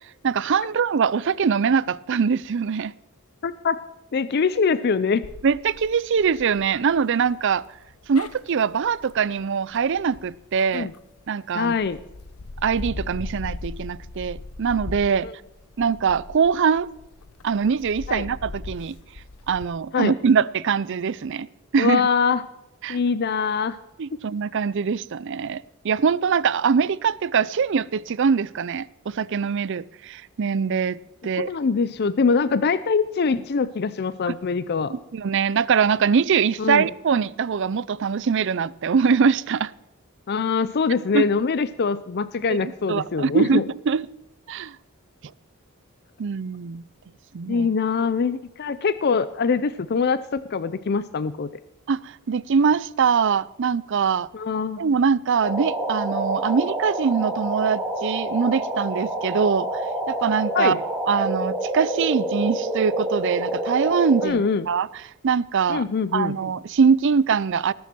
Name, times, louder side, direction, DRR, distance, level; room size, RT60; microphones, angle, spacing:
voice 1, 0.2-2.9 5.4-7.6 8.1-10.9 11.3-11.7 12.6-15.3 15.8-16.9 17.4-18.9 19.5-21.5 21.7-22.0 22.8-23.0 24.0-31.0 31.2-31.5 34.3-34.4 34.9-39.7 41.1-41.2 42.5-42.6 42.9-44.0 44.5-44.8 46.2-46.8 47.3-47.7 51.9-54.3 54.8-59.8 60.1-60.8 61.1-64.9 65.2-65.8 66.1-67.7, right 6 dB, 55° right, 0.4 m, -23 dB
voice 2, 3.4-3.8 4.1-5.2 10.7-10.9 11.5-12.0 15.2-15.3 18.1-18.2 19.9-20.1 21.8-22.4 22.9-23.8 31.4-34.9 36.6-36.9 40.3-43.6 47.5-51.5 54.3-54.8 60.5-60.8 64.2-64.7 65.7-66.3, left 5 dB, 50° left, 0.5 m, -23 dB
sound 1, 5.2-11.2 11.7-19.7, left 2 dB, 90° left, 0.9 m, -39 dB
sound 2, 55.4-64.3, right 1 dB, 10° right, 2.2 m, -28 dB
19.5 x 7.2 x 6.0 m
head